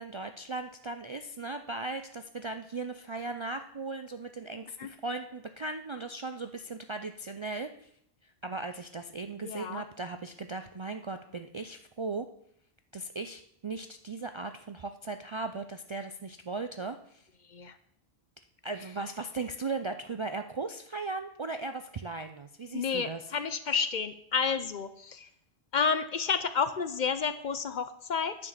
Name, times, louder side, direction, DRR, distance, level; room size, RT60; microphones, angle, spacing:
voice 1, 0.0-7.7 8.4-12.3 12.9-17.2 18.6-23.2, right 3 dB, 45° right, 7 dB, 0.4 m, -37 dB
voice 2, 9.4-9.8 17.5-17.8 22.7-25.3 25.7-28.5, left 6 dB, 55° left, 12 dB, 0.7 m, -30 dB
9.6 x 4.8 x 7.4 m, 0.72 s
omnidirectional pair, 1.1 m